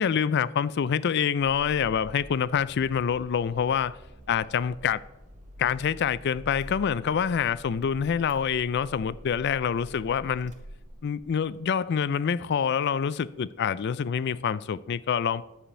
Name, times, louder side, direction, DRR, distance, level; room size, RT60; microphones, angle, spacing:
voice 1, 0.0-4.0 4.3-5.0 5.6-10.5 11.0-15.5, left 7 dB, 50° left, 0.3 m, -26 dB
Car / Engine starting, 1.4-11.5, equal, 35° right, 1.1 m, -47 dB
10.0 x 5.0 x 6.3 m
head